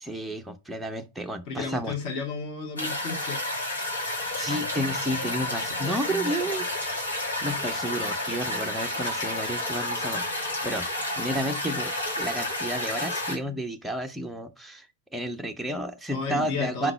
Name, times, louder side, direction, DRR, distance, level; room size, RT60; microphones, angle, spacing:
voice 1, 0.0-1.9 4.3-6.7 7.4-10.9 11.2-14.9 15.1-16.9, right 1 dB, 5° right, 0.7 m, -31 dB
voice 2, 1.5-3.4 16.1-16.9, left 5 dB, 45° left, 1.9 m, -32 dB
sound 1, 2.8-13.4, left 1 dB, 75° left, 2.3 m, -30 dB
5.1 x 4.0 x 5.5 m
figure-of-eight pair, 90°, 0 cm